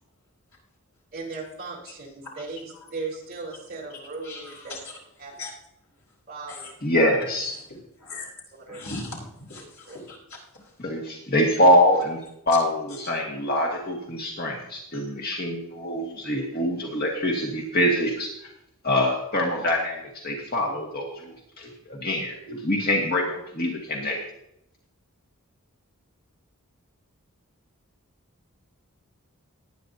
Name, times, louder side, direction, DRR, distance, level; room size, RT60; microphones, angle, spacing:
voice 1, 1.1-4.8 5.2-5.3 6.3-6.7 8.6-8.9 9.6-10.0, right 3 dB, 40° right, -4 dB, 3.7 m, -37 dB
voice 2, 4.2-4.8 5.4-5.5 6.5-6.7 8.0-8.3 8.7-10.4, left 2 dB, 60° left, -4 dB, 4.6 m, -38 dB
voice 3, 6.8-7.5 10.8-12.2 12.5-18.5 18.8-24.2, left 1 dB, 45° left, -1 dB, 1.9 m, -24 dB
19.5 x 9.4 x 2.7 m, 0.77 s
head